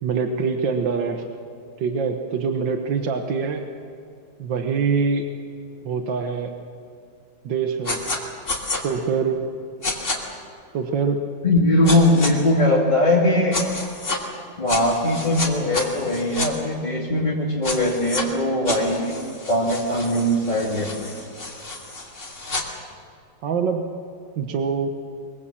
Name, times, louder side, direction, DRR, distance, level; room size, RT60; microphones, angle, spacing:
voice 1, 0.0-1.3 1.8-3.7 4.4-5.3 5.8-6.5 7.4-8.2 8.8-9.5 10.7-11.2 23.4-23.8 24.4-24.9, right 5 dB, 75° right, 5 dB, 1.9 m, -24 dB
sound 1, 7.9-8.2 8.5-8.8 9.8-10.2 11.9-12.3 13.5-14.2 14.7-16.5 17.6-18.2 18.7-22.6, left 2 dB, 40° left, 3.2 m, -29 dB
voice 2, 11.4-13.6 14.6-19.2 19.5-21.1, left 1 dB, 25° left, -4 dB, 2.6 m, -20 dB
23.5 x 23.0 x 7.4 m, 2.4 s
omnidirectional pair, 2.0 m